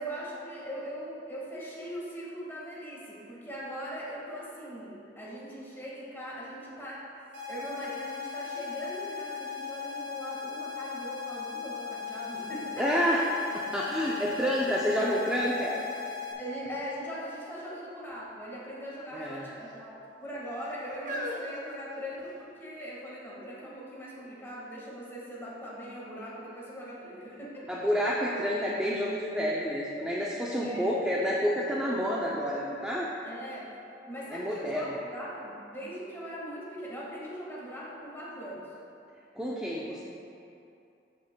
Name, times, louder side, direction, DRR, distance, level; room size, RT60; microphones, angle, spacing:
voice 1, 0.0-7.1 7.5-13.2 16.4-27.8 30.6-31.0 33.2-33.7 34.1-38.7, equal, 15° left, -6 dB, 1.7 m, -40 dB
sound 1, 7.3-16.3, left 7 dB, 80° right, 1.6 m, -38 dB
voice 2, 12.8-13.2 13.7-15.8 19.1-19.6 27.7-33.1 34.3-34.9 39.3-40.0, equal, 5° right, -5 dB, 0.5 m, -29 dB
sound 2, 13.5-13.6 14.0-15.5 16.1-16.6 17.5-17.8 18.1-18.3 19.1-19.8 20.5-22.5 23.3-23.4, equal, 45° right, 0.9 m, -42 dB
13.0 x 6.0 x 2.2 m, 2.7 s
head